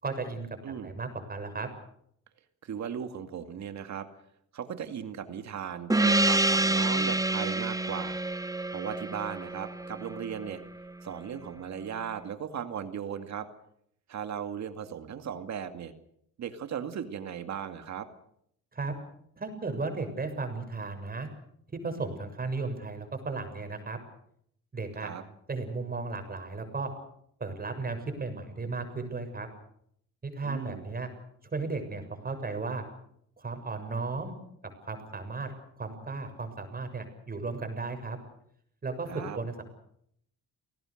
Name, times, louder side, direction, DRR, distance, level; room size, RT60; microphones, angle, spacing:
voice 1, 0.0-1.7 18.7-18.9 19.4-21.3 21.7-24.0 24.7-25.1 25.5-26.9 27.4-29.5 30.2-31.1 31.5-32.8 33.4-34.3 34.8-38.2 38.8-39.1 39.3-39.6, right 3 dB, 30° right, 7 dB, 6.9 m, -35 dB
voice 2, 0.6-0.9 2.6-4.1 4.5-10.6 11.0-13.5 14.1-15.9 16.4-18.1 25.0-25.2 30.4-30.9 39.1-39.4, right 8 dB, 65° right, 8 dB, 2.3 m, -37 dB
Gong, 5.9-10.9, right 2 dB, 10° right, 1.0 m, -27 dB
29.0 x 19.0 x 6.6 m, 0.70 s
cardioid pair, 90°, 30 cm